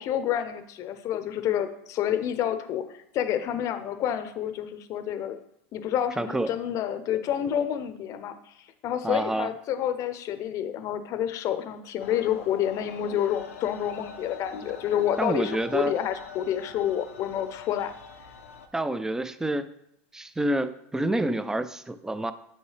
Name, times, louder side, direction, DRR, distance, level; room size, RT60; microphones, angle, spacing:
voice 1, 0.0-2.8 3.1-5.4 5.7-8.4 8.8-17.9, left 10 dB, 45° left, 11 dB, 0.6 m, -28 dB
voice 2, 6.2-6.5 9.0-9.5 15.2-15.9 18.7-19.7 20.1-22.3, right 1 dB, 5° right, 13 dB, 0.4 m, -28 dB
sound 1, 12.0-18.7, left 5 dB, 90° left, 0.6 m, -44 dB
7.2 x 5.4 x 3.3 m, 0.77 s
hypercardioid pair, 100°, 7 cm